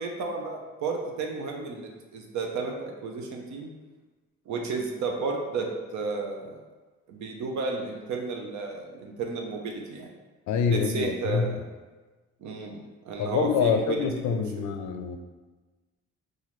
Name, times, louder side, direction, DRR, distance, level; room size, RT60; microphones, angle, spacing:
voice 1, 0.0-3.7 4.5-6.6 7.1-10.1 10.7-11.6 12.4-14.7, right 4 dB, 70° right, 2 dB, 0.7 m, -33 dB
voice 2, 10.5-11.5 13.2-15.2, left 6 dB, 70° left, 6 dB, 0.5 m, -26 dB
4.0 x 2.5 x 3.0 m, 1.3 s
cardioid pair, 90°, 30 cm